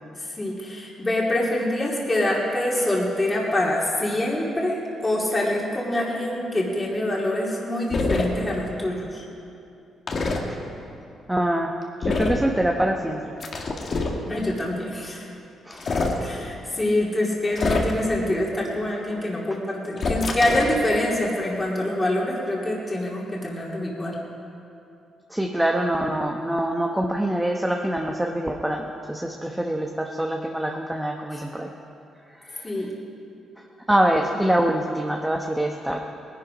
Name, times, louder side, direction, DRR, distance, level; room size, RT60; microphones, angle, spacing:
voice 1, 0.1-9.2 14.3-15.3 16.2-24.2 31.3-31.5 32.6-32.9, left 1 dB, 20° left, -4 dB, 2.6 m, -25 dB
sound 1, 7.9-8.3 10.1-10.4 12.0-12.5 13.4-14.2 15.7-16.2 17.5-18.1 20.0-20.8, left 3 dB, 50° left, 1.8 m, -25 dB
voice 2, 11.3-11.7 12.0-13.3 15.7-15.9 25.3-31.7 32.5-32.7 33.9-36.0, right 1 dB, 10° right, 1 dB, 1.0 m, -24 dB
19.0 x 11.5 x 5.1 m, 2.7 s
cardioid pair, 80°, 0 cm